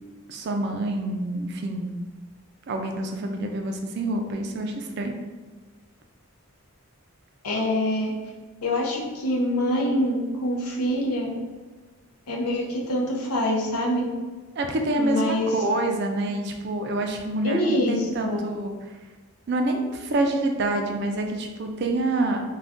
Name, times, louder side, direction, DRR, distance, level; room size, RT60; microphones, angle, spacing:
voice 1, 0.3-1.9 2.7-5.2 14.6-18.9 19.5-22.4, right 2 dB, 50° right, 4 dB, 0.3 m, -27 dB
voice 2, 7.4-8.1 8.6-11.3 12.3-14.1 15.0-15.5 17.4-18.5, left 1 dB, 90° left, -2 dB, 0.7 m, -25 dB
2.5 x 2.2 x 3.5 m, 1.3 s
head